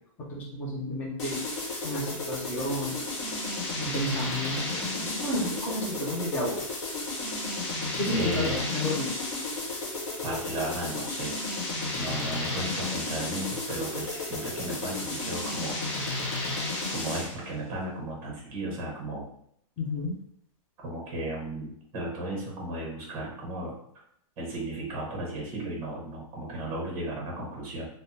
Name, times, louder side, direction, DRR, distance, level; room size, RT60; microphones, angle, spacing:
voice 1, 0.2-1.4 1.8-3.3 3.8-6.6 7.9-9.2 19.8-20.1, left 1 dB, 10° left, -3 dB, 0.3 m, -32 dB
sound 1, 1.2-17.4, left 2 dB, 50° left, 1.0 m, -33 dB
voice 2, 8.1-8.7 10.2-11.3 11.9-15.8 16.9-19.2 20.8-23.7 24.4-27.9, right 1 dB, 25° right, -2 dB, 0.9 m, -35 dB
3.4 x 2.0 x 2.7 m, 0.70 s
hypercardioid pair, 170°, 18 cm